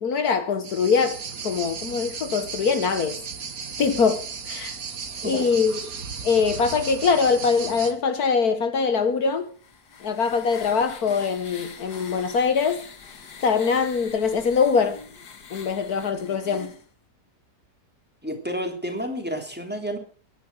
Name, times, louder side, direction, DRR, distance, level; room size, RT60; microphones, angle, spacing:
voice 1, 0.0-3.2 3.8-4.7 5.2-5.8 6.2-9.5 10.0-12.8 13.4-15.0 15.5-16.7, left 5 dB, 65° left, 1.7 m, -23 dB
sound 1, 0.6-7.9, right 5 dB, 60° right, 2.0 m, -35 dB
voice 2, 5.1-5.5 18.2-20.0, equal, 5° right, 3.1 m, -30 dB
sound 2, 9.3-16.9, left 5 dB, 85° left, 2.3 m, -44 dB
17.0 x 11.0 x 6.3 m
omnidirectional pair, 1.7 m